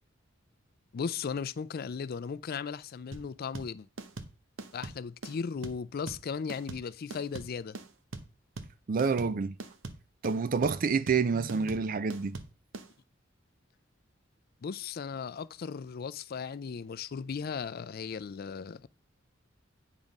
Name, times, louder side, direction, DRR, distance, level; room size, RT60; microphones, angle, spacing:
voice 1, 0.9-3.9 4.7-7.8 14.6-18.9, left 6 dB, 50° left, 0.4 m, -36 dB
sound 1, 3.1-12.9, right 3 dB, 85° right, 0.9 m, -42 dB
voice 2, 8.9-9.6 10.2-12.4, right 5 dB, 45° right, 0.4 m, -28 dB
8.9 x 3.7 x 5.2 m
head